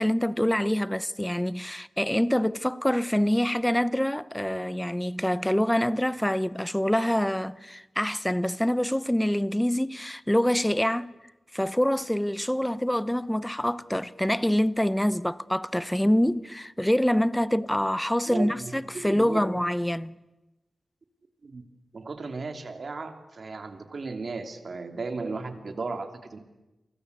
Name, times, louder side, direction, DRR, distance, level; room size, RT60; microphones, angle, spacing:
voice 1, 0.0-11.1 11.5-20.1, equal, 5° left, 0.9 m, -25 dB
voice 2, 18.3-19.4 21.4-21.6 21.9-26.4, right 3 dB, 60° right, 3.2 m, -35 dB
29.5 x 24.0 x 8.3 m
wide cardioid pair, 85°, 0 cm